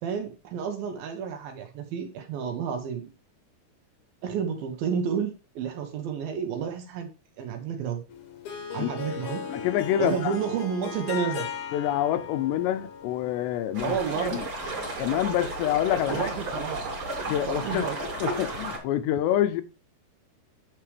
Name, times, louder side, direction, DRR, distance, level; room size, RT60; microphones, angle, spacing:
voice 1, 0.0-3.1 4.2-7.1 7.4-8.0 8.7-9.5 10.0-11.5 13.8-14.4 16.1-17.1 17.5-18.0, right 7 dB, 70° right, 2.5 m, -31 dB
Harp, 8.1-13.9, left 7 dB, 65° left, 2.1 m, -37 dB
voice 2, 9.5-10.4 11.7-13.9 14.3-14.4 15.0-16.3 17.3-17.9 18.2-19.6, left 12 dB, 90° left, 2.9 m, -26 dB
sound 1, 13.7-18.8, right 2 dB, 30° right, 2.9 m, -33 dB
9.2 x 6.6 x 3.3 m
omnidirectional pair, 4.9 m